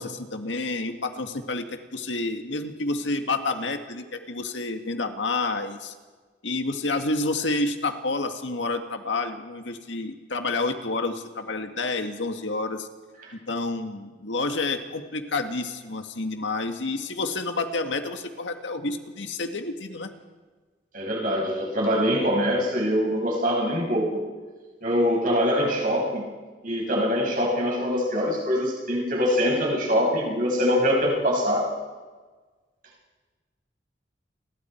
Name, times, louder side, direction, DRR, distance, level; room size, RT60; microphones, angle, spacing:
voice 1, 0.0-5.9 6.4-12.9 13.5-20.1, left 3 dB, 80° left, 6 dB, 1.9 m, -29 dB
voice 2, 20.9-24.2 24.8-26.3 26.6-31.7, equal, 45° right, 0 dB, 6.1 m, -23 dB
29.5 x 22.0 x 4.6 m, 1.4 s
head